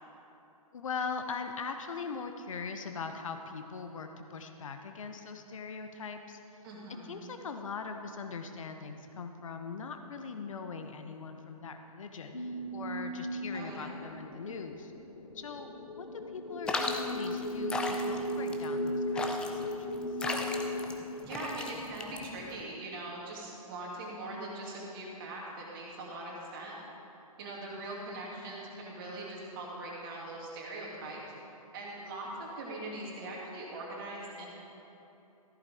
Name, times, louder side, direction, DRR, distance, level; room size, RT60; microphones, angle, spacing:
voice 1, 0.7-6.4 7.1-14.9 15.3-19.9, left 5 dB, 60° left, 6 dB, 0.8 m, -41 dB
voice 2, 6.6-7.2 13.5-14.1 21.2-26.8 27.4-31.2 31.7-34.5, right 2 dB, 35° right, -3 dB, 2.5 m, -41 dB
sound 1, 12.3-22.1, equal, 85° left, 0.9 m, -37 dB
sound 2, 16.7-22.6, left 3 dB, 5° left, 0.4 m, -36 dB
14.0 x 11.5 x 3.5 m, 2.9 s
figure-of-eight pair, 125°, 19 cm